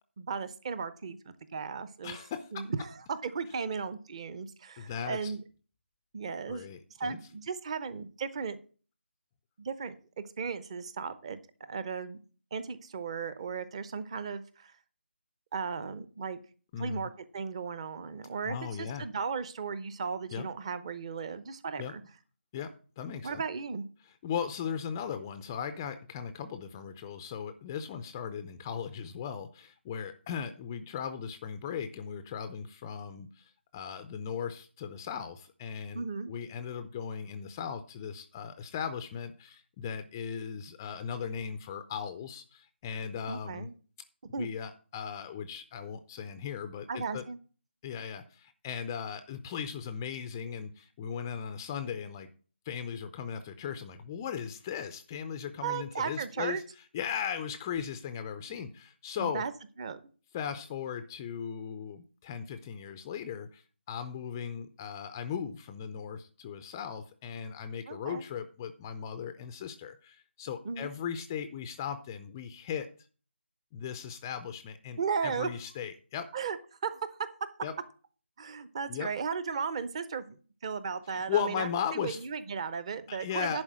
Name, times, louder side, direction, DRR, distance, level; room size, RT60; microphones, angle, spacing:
voice 1, 0.2-2.2 2.5-5.4 6.1-6.7 7.0-8.6 9.6-11.4 11.7-12.2 12.5-14.7 15.5-16.4 16.8-22.0 23.2-23.9 35.9-36.3 43.3-43.7 44.3-44.5 46.9-47.4 55.6-56.6 59.2-59.5 59.8-60.0 67.9-68.2 70.6-70.9 75.0-75.5 76.3-76.6 76.8-77.0 78.4-80.4 80.6-83.6, right 5 dB, 30° right, 14 dB, 0.8 m, -36 dB
voice 2, 2.0-2.7 4.8-5.3 6.5-7.2 16.7-17.1 18.5-19.1 20.3-20.5 21.8-21.9 22.5-23.4 24.2-43.7 44.4-47.2 47.8-52.3 52.7-56.6 56.9-59.4 60.3-63.6 63.9-72.9 73.7-76.3 77.6-77.7 78.9-79.1 81.1-82.2 83.1-83.6, left 7 dB, 15° left, 10 dB, 0.4 m, -37 dB
10.5 x 4.3 x 7.4 m, 0.39 s
figure-of-eight pair, 160°, 6 cm